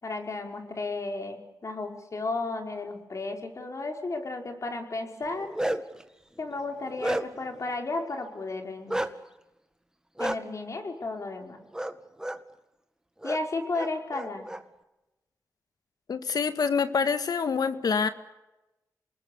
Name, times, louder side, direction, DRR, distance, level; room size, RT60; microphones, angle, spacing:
voice 1, 0.0-5.5 6.4-9.0 10.2-11.6 13.2-14.5, left 3 dB, 50° left, 4 dB, 5.1 m, -33 dB
Bark, 5.2-6.0 6.5-7.5 8.9-9.1 10.2-10.4 11.7-11.9 12.2-12.4 13.2-13.4 13.7-14.6, right 1 dB, 10° right, 1.9 m, -31 dB
voice 2, 16.1-18.1, left 5 dB, 70° left, 10 dB, 1.9 m, -26 dB
28.0 x 20.5 x 8.4 m, 0.97 s
cardioid pair, 65°, 7 cm